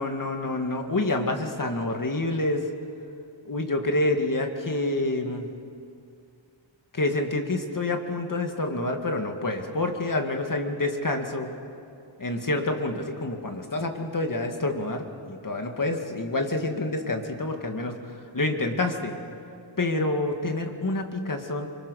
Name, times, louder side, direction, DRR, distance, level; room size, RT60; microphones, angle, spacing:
voice 1, 0.0-2.7 3.5-5.5 6.9-11.5 12.2-19.1 19.8-21.7, left 2 dB, 40° left, 4 dB, 2.2 m, -28 dB
26.5 x 24.0 x 6.5 m, 2.4 s
wide cardioid pair, 110°, 47 cm